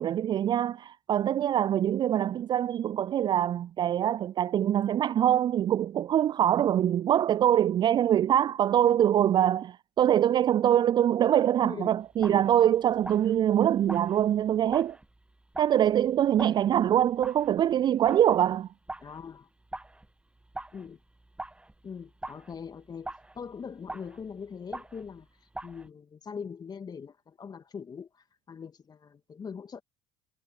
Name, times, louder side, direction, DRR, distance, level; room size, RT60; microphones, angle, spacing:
voice 1, 0.0-15.0 15.6-18.7, right 10 dB, 35° right, 0.4 m, -24 dB
voice 2, 11.6-12.0 12.3-12.5 19.0-19.5 20.7-21.0 21.8-25.3 25.6-29.8, left 6 dB, 30° left, 2.5 m, -42 dB
sound 1, 12.1-18.6 18.9-25.3 25.5-25.9, right 2 dB, 10° right, 1.5 m, -44 dB
figure-of-eight pair, 65°, 13 cm